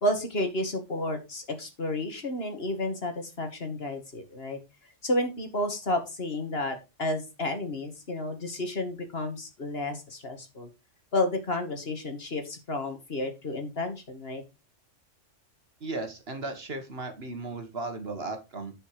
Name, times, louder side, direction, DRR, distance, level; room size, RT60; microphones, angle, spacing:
voice 1, 0.0-4.6 5.0-10.7 11.1-14.4, left 1 dB, 50° left, 6 dB, 2.2 m, -31 dB
voice 2, 15.8-18.7, right 3 dB, 50° right, 7 dB, 1.8 m, -36 dB
10.0 x 5.4 x 4.8 m, 0.26 s
omnidirectional pair, 1.3 m